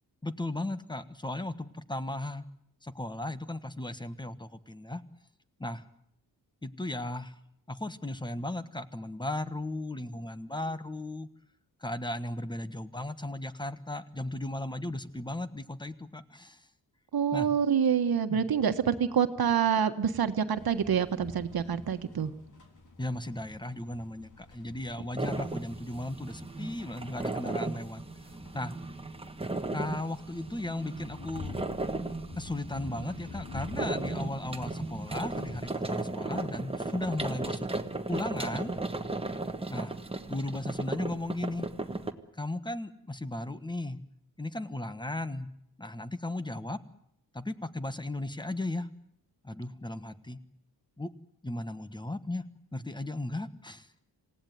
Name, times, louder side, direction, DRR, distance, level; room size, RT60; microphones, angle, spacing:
voice 1, 0.2-2.4 2.8-5.0 5.6-5.8 6.6-7.3 7.7-11.3 11.8-16.7 17.3-17.5 18.3-18.4 23.0-28.0 28.5-28.8 29.7-31.5 32.3-37.7 38.1-38.7 39.7-40.0 40.3-41.7 42.3-44.0 44.4-45.5 45.8-46.8 47.3-48.9 49.4-50.4 51.0-51.1 51.4-52.4 52.7-53.9, left 1 dB, 10° left, 12 dB, 1.2 m, -36 dB
voice 2, 17.1-22.3, right 7 dB, 70° right, 9 dB, 1.5 m, -27 dB
sound 1, 20.6-35.8, left 3 dB, 55° left, 3.7 m, -48 dB
sound 2, 25.2-42.1, right 2 dB, 15° right, 1.4 m, -36 dB
27.5 x 17.5 x 9.4 m, 0.75 s
wide cardioid pair, 145°, 37 cm